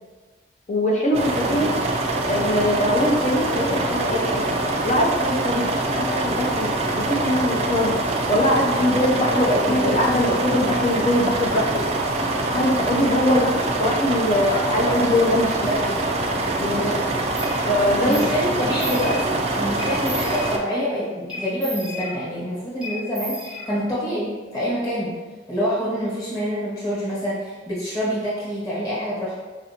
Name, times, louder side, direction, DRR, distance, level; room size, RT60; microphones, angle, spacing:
voice 1, 0.7-1.7 2.3-4.5 4.8-5.7 5.9-8.0 8.3-11.7 12.5-13.5 13.8-16.0 16.6-16.8 17.6-18.2, left 1 dB, 40° left, -2 dB, 0.5 m, -22 dB
sound 1, 1.1-20.6, right 2 dB, 35° right, 0.3 m, -24 dB
voice 2, 8.9-10.0 13.3-13.5 16.6-17.1 18.1-25.2 25.5-29.4, equal, 20° left, -7 dB, 1.1 m, -27 dB
sound 2, 17.4-17.5 18.1-18.3 18.6-19.4 19.8-20.8 21.3-22.4 22.8-24.1, left 1 dB, 5° right, 0.8 m, -34 dB
4.2 x 2.5 x 2.8 m, 1.3 s
head